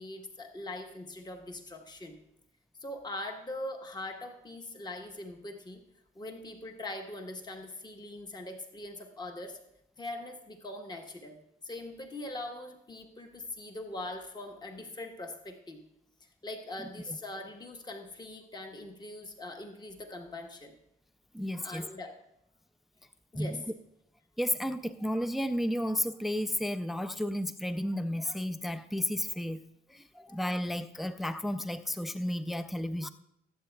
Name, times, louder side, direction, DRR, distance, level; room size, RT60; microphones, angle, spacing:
voice 1, 0.0-2.2 2.8-5.8 6.1-9.6 10.0-15.8 16.4-20.8 21.6-22.2 23.3-23.6, left 2 dB, 20° left, 4 dB, 1.1 m, -42 dB
voice 2, 21.3-21.9 23.3-23.6 24.4-29.6 29.9-33.1, left 1 dB, ahead, 12 dB, 0.4 m, -32 dB
19.5 x 7.7 x 2.3 m, 0.79 s
cardioid pair, 90°, 20 cm